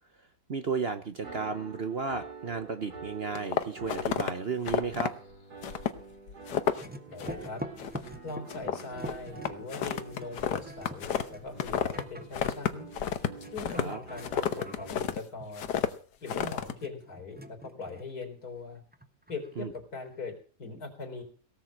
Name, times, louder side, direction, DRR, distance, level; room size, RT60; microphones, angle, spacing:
voice 1, 0.5-5.1 13.8-14.0 19.6-19.7, right 5 dB, 45° right, 8 dB, 1.0 m, -33 dB
sound 1, 1.2-14.9, right 5 dB, 75° right, 2.8 m, -47 dB
sound 2, 3.4-4.3 4.7-5.1 5.6-6.0 6.3-6.9 7.2-7.5 7.8-8.2 8.5-12.0 12.3-15.2 15.6-15.9 16.3-16.7, left 8 dB, 85° left, 1.6 m, -31 dB
sound 3, 6.7-18.5 18.8-20.2, right 1 dB, 10° right, 0.8 m, -46 dB
voice 2, 7.1-7.6 8.2-12.9 13.5-15.7 16.2-18.8 19.3-21.2, left 3 dB, 65° left, 4 dB, 4.3 m, -41 dB
18.0 x 7.6 x 7.4 m, 0.41 s
omnidirectional pair, 1.7 m